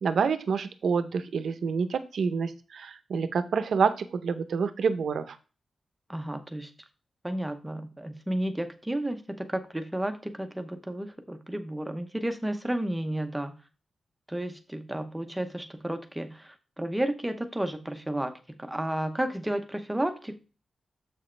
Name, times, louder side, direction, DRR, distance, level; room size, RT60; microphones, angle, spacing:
voice 1, 0.0-5.4, right 5 dB, 70° right, 11 dB, 0.7 m, -28 dB
voice 2, 6.1-6.7 7.2-13.6 14.3-20.4, right 1 dB, 5° right, 8 dB, 0.7 m, -32 dB
7.5 x 6.2 x 3.2 m, 0.34 s
wide cardioid pair, 175°, 0 cm